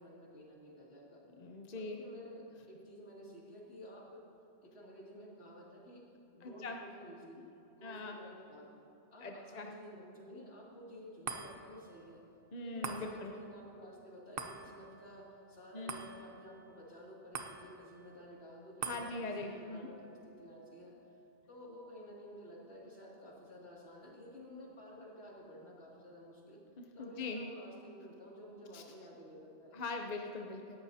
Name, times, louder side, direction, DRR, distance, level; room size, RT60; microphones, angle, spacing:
voice 1, 0.0-1.2 1.7-4.2 4.6-6.0 6.3-7.4 7.7-8.7 9.1-12.2 12.6-20.9 21.5-26.6 27.0-29.8, equal, 65° left, -4 dB, 2.8 m, -52 dB
voice 2, 1.4-2.0 6.4-6.8 7.8-8.2 9.2-9.7 12.5-13.3 15.7-15.9 18.8-19.9 27.0-27.4 28.7-28.8 29.7-30.8, left 3 dB, 40° left, 3 dB, 0.8 m, -41 dB
sound 1, 11.2-23.8 24.3-24.4, right 5 dB, 60° right, 1.0 m, -49 dB
18.0 x 14.5 x 2.8 m, 2.7 s
omnidirectional pair, 1.2 m